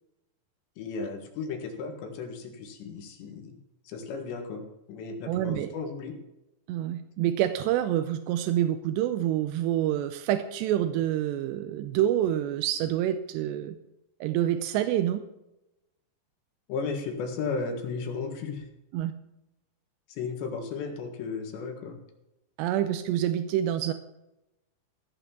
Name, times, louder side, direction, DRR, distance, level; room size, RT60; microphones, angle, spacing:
voice 1, 0.8-3.6 3.9-6.1 16.7-18.7 20.1-22.0, left 4 dB, 85° left, 4 dB, 3.9 m, -35 dB
voice 2, 5.3-5.7 6.7-13.8 14.2-15.2 18.9-19.1 22.6-23.9, right 12 dB, 90° right, 8 dB, 2.8 m, -27 dB
16.0 x 5.9 x 7.0 m, 0.91 s
omnidirectional pair, 4.9 m